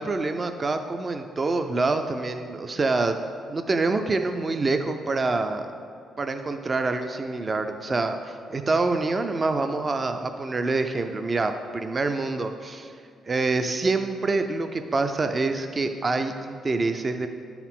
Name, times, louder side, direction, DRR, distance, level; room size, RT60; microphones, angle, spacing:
voice 1, 0.0-3.2 3.5-5.7 6.2-12.9 13.3-17.3, right 3 dB, 30° right, 7 dB, 0.3 m, -26 dB
9.8 x 4.7 x 3.6 m, 2.4 s
cardioid pair, 90°, 0 cm